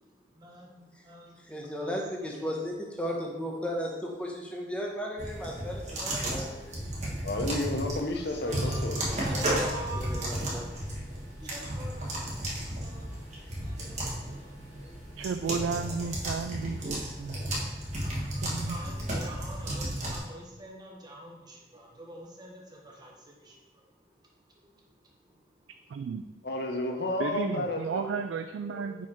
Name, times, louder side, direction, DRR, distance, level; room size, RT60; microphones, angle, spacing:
voice 1, 0.3-1.4 1.8-1.9 2.2-2.5 8.1-10.6 11.4-13.2 13.6-14.8 18.0-23.9 24.6-25.0 25.3-25.4 25.6-25.7, right 1 dB, 25° right, -1 dB, 1.1 m, -45 dB
voice 2, 1.5-6.9 9.0-9.5 10.0-10.6 11.4-11.6, equal, 5° left, -1 dB, 0.9 m, -36 dB
sound 1, 5.2-20.2, right 1 dB, 40° right, 1.4 m, -34 dB
voice 3, 7.2-9.0 26.4-28.1 28.7-29.1, left 2 dB, 60° left, 3 dB, 0.7 m, -32 dB
voice 4, 15.2-17.4 18.4-18.8 25.9-26.2 27.2-29.1, right 5 dB, 90° right, 8 dB, 0.3 m, -33 dB
5.8 x 4.9 x 4.4 m, 1.1 s
head